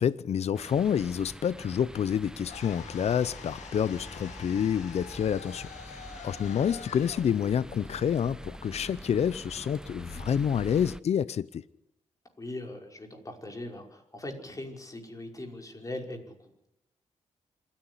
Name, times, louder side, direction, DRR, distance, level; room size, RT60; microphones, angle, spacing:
voice 1, 0.0-11.6, left 8 dB, 65° left, 0.7 m, -28 dB
sound 1, 0.5-11.0, right 1 dB, 5° right, 0.8 m, -45 dB
sound 2, 2.5-8.6, left 8 dB, 90° left, 1.7 m, -47 dB
voice 2, 12.4-16.7, left 1 dB, 30° left, 5.4 m, -40 dB
26.5 x 10.5 x 9.9 m
cardioid pair, 65°, 12 cm